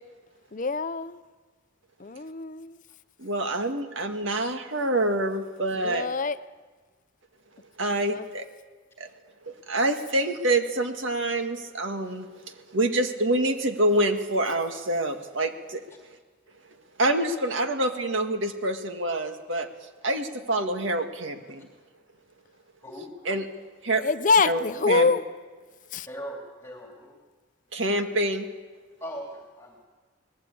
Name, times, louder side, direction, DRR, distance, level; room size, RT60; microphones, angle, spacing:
voice 1, 0.5-1.2 2.0-2.8 5.8-6.4 8.1-8.3 24.0-25.2 25.9-26.1, left 4 dB, 40° left, 14 dB, 0.6 m, -25 dB
voice 2, 3.2-6.1 7.8-8.4 9.0-9.1 9.4-12.3 12.7-15.8 17.0-19.7 20.0-21.7 23.2-23.4 23.8-24.0 24.4-25.1 27.7-28.5, right 1 dB, 75° right, 6 dB, 1.8 m, -26 dB
voice 3, 26.0-27.2 29.0-29.9, equal, 15° left, 0 dB, 2.7 m, -39 dB
19.5 x 15.5 x 8.6 m, 1.4 s
head